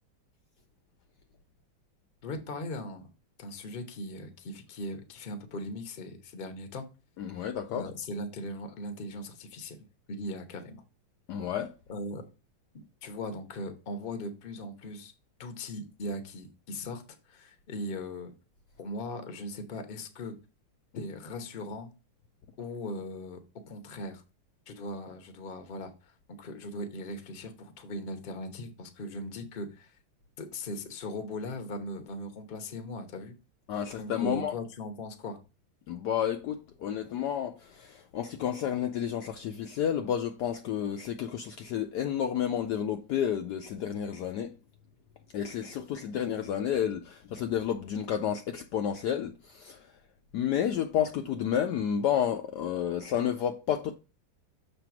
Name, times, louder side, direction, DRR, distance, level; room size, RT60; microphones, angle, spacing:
voice 1, 2.2-3.1 3.4-6.9 7.7-10.8 11.9-12.2 13.0-15.1 15.4-17.0 17.3-18.3 18.8-20.3 20.9-21.9 22.6-23.4 23.7-24.2 24.7-29.9 30.4-33.3 34.0-35.4, left 1 dB, 45° left, 0.7 m, -39 dB
voice 2, 7.2-7.9 11.3-11.7 33.7-34.5 35.9-44.5 45.3-49.8 50.3-53.9, left 9 dB, 85° left, 0.9 m, -31 dB
6.9 x 3.4 x 5.8 m
omnidirectional pair, 2.4 m